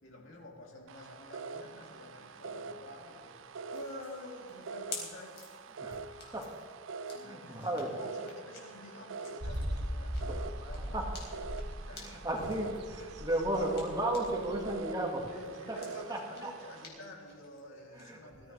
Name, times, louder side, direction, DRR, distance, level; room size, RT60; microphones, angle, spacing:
voice 1, 0.0-5.4 7.1-11.1 11.8-12.5 15.3-18.5, left 1 dB, 70° left, -1 dB, 2.9 m, -49 dB
sound 1, 0.9-16.9, right 4 dB, 70° right, 0.4 m, -45 dB
sound 2, 3.7-14.5 14.9-18.0, left 4 dB, 50° left, 3.8 m, -51 dB
voice 2, 5.8-6.5 7.2-7.9 10.3-11.4 11.9-15.3 15.7-15.8 16.1-16.5 18.0-18.2, right 1 dB, 20° right, 0 dB, 1.8 m, -35 dB
sound 3, 9.4-14.7, equal, 55° right, 1.4 m, -39 dB
20.0 x 14.0 x 3.3 m, 2.1 s
head